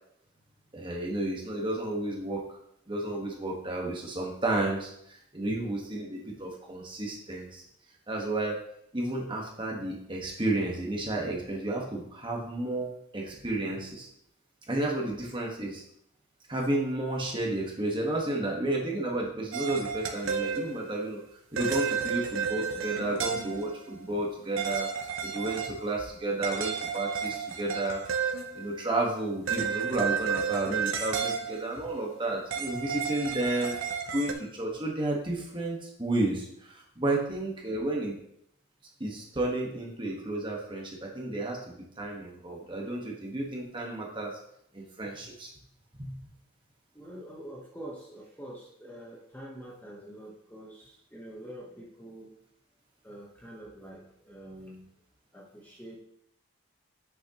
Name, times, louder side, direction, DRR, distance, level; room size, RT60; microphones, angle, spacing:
voice 1, 0.7-2.6 2.9-7.6 8.1-8.6 8.9-14.1 14.7-15.8 16.5-21.2 21.5-24.9 25.2-33.7 34.1-38.2 39.0-44.3 44.7-45.5 45.9-46.1, right 2 dB, 20° right, -2 dB, 1.4 m, -32 dB
sound 1, 19.5-21.0 21.6-23.8 24.6-25.8 26.1-26.2 26.4-28.8 29.5-31.8 32.5-34.3, right 6 dB, 65° right, 0.8 m, -32 dB
voice 2, 46.9-52.4 53.0-54.9 55.3-56.0, right 1 dB, 10° left, -3 dB, 1.0 m, -46 dB
8.5 x 6.3 x 3.0 m, 0.73 s
head